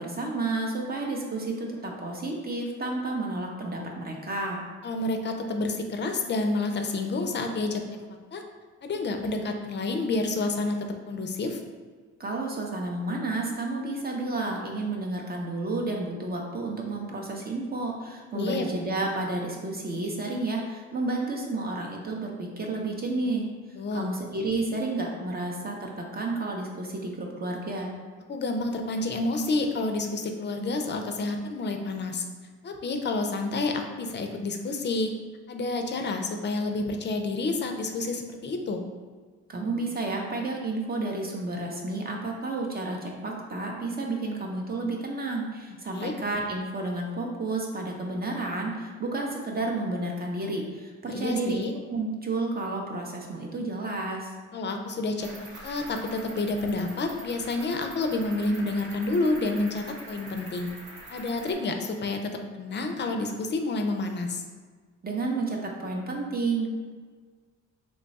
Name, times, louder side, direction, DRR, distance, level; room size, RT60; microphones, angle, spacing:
voice 1, 0.0-4.6 12.2-23.5 23.9-27.9 39.5-51.6 51.9-54.3 65.0-66.7, right 2 dB, 30° right, 0 dB, 0.6 m, -31 dB
voice 2, 4.8-7.8 8.3-8.4 8.8-10.8 11.1-11.6 18.3-18.7 23.8-24.1 28.3-32.2 32.6-35.1 35.5-38.8 45.9-46.1 51.1-51.7 54.5-60.7 61.1-64.4, left 2 dB, 35° left, 4 dB, 0.5 m, -29 dB
Cricket, 55.2-61.5, right 2 dB, 75° right, 0.8 m, -44 dB
3.1 x 2.3 x 4.0 m, 1.5 s
cardioid pair, 90°, 30 cm